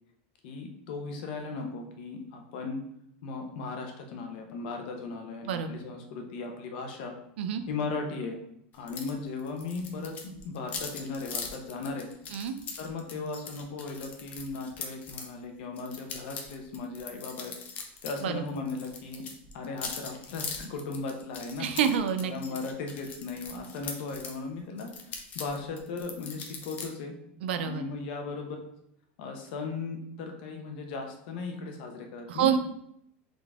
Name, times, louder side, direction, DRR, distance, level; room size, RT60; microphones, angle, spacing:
voice 1, 0.4-2.8 3.2-7.2 7.7-8.4 8.7-12.1 12.8-17.5 18.0-19.3 19.5-21.7 22.2-27.1 27.6-28.6 29.2-32.5, left 4 dB, 55° left, 3 dB, 0.9 m, -37 dB
sound 1, 8.9-9.1 9.4-15.3 15.8-18.2 18.5-24.4 24.8-26.9, left 5 dB, 25° left, 0.6 m, -41 dB
voice 2, 21.6-22.3 27.4-27.8 32.3-32.6, right 8 dB, 90° right, 9 dB, 0.5 m, -27 dB
3.8 x 3.6 x 3.5 m, 0.74 s
supercardioid pair, 170°, 6 cm